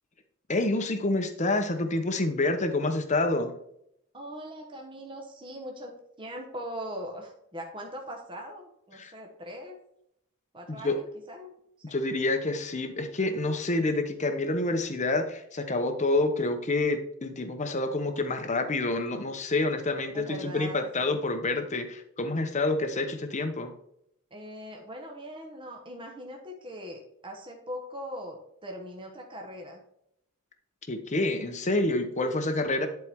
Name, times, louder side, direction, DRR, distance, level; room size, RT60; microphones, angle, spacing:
voice 1, 0.5-3.5 8.9-9.1 10.7-11.0 11.8-23.7 30.9-32.9, left 2 dB, 30° left, 7 dB, 0.9 m, -28 dB
voice 2, 4.1-9.8 10.5-11.5 20.1-21.2 24.3-29.8, equal, 20° right, 1 dB, 1.2 m, -41 dB
11.0 x 4.5 x 3.6 m, 0.74 s
head